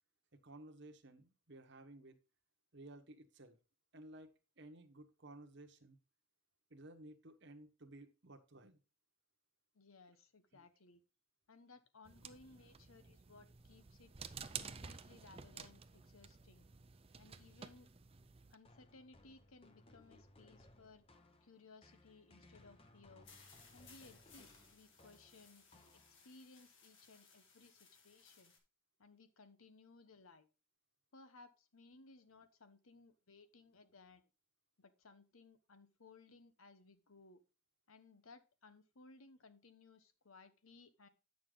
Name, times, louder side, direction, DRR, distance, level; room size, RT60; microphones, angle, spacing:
voice 1, 0.3-2.2 2.7-3.6 3.9-6.0 6.7-8.8 10.5-10.7, right 1 dB, 55° right, 6 dB, 1.1 m, -56 dB
voice 2, 9.7-11.0 11.5-14.1 14.6-16.7 17.2-17.9 18.5-21.0 21.4-23.3 23.7-28.5 29.0-30.5 31.1-34.2 34.8-37.4 37.9-41.1, left 3 dB, 90° left, 11 dB, 1.1 m, -62 dB
sound 1, 12.0-18.5, right 6 dB, 30° right, 0.5 m, -52 dB
sound 2, 18.6-26.5, left 1 dB, 25° left, 0.9 m, -65 dB
sound 3, 23.2-28.6, left 5 dB, 60° left, 2.0 m, -64 dB
8.9 x 6.4 x 3.8 m, 0.31 s
head